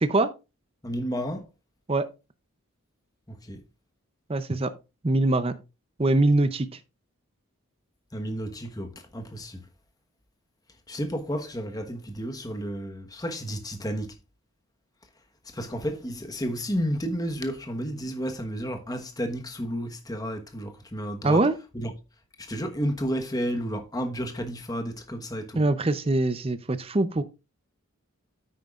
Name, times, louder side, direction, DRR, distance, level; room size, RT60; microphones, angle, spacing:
voice 1, 0.8-1.5 3.3-3.6 8.1-9.6 10.9-14.1 15.4-21.4 21.7-21.9 22.4-25.6, equal, 15° left, 1.2 m, -32 dB
voice 2, 4.3-4.7 5.0-5.5 6.0-6.8 21.2-21.5 25.6-27.2, right 2 dB, 25° right, 0.5 m, -23 dB
9.1 x 9.1 x 2.4 m
head